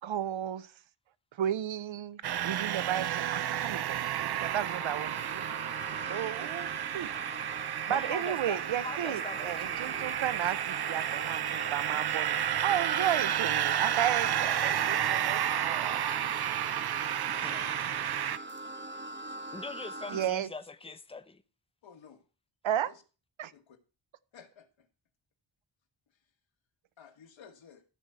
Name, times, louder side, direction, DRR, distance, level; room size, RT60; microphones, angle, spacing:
voice 1, 0.0-0.7 1.4-4.0 4.4-5.5 6.1-7.1 7.9-16.0 20.1-20.5 22.6-22.9 23.4-23.5, right 10 dB, 90° right, 0.8 m, -33 dB
sound 1, 2.2-18.4, right 10 dB, 60° right, 0.6 m, -31 dB
sound 2, 4.4-20.3, right 1 dB, 25° right, 1.2 m, -43 dB
voice 2, 7.9-10.2 17.4-17.7 19.5-21.4, left 3 dB, 10° left, 0.8 m, -42 dB
voice 3, 17.3-17.7 21.8-22.3 22.8-23.0 23.5-23.8 24.3-24.9 26.1-26.3 27.0-27.8, left 7 dB, 85° left, 1.8 m, -54 dB
14.5 x 4.8 x 6.8 m
wide cardioid pair, 130°, 45 cm